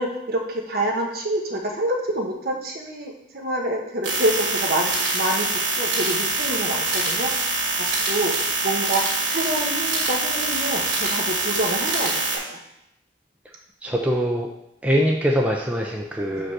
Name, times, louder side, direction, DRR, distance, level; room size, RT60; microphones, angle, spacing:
voice 1, 0.0-7.6 8.1-8.3 8.6-9.0 9.3-12.6 16.3-16.5, right 1 dB, 50° right, 1 dB, 1.2 m, -27 dB
sound 1, 4.0-12.4, right 2 dB, 80° right, 2.3 m, -24 dB
voice 2, 13.8-14.5 14.8-16.5, equal, 5° right, -1 dB, 0.5 m, -23 dB
5.2 x 4.9 x 6.0 m, 0.78 s
head